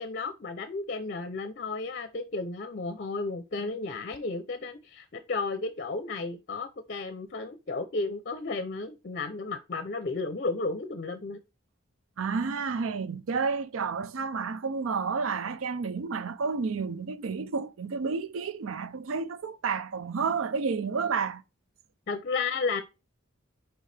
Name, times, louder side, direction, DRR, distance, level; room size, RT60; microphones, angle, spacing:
voice 1, 0.0-11.4 22.1-22.8, left 3 dB, 45° left, 0.5 m, -33 dB
voice 2, 12.2-21.4, right 5 dB, 85° right, 0.5 m, -30 dB
6.4 x 4.7 x 3.3 m
head